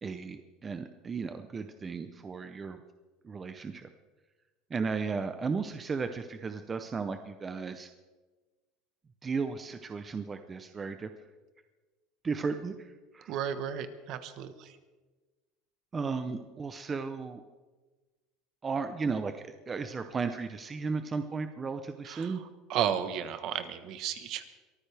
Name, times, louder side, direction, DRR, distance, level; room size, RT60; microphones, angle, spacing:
voice 1, 0.0-2.8 3.2-3.9 4.7-7.9 9.2-11.1 12.2-13.3 15.9-17.4 18.6-22.4, right 4 dB, 20° right, 8 dB, 0.7 m, -35 dB
voice 2, 13.3-14.7 22.0-22.4 22.7-24.4, right 9 dB, 45° right, 10 dB, 1.2 m, -33 dB
23.0 x 15.0 x 3.4 m, 1.3 s
cardioid pair, 160°, 0 cm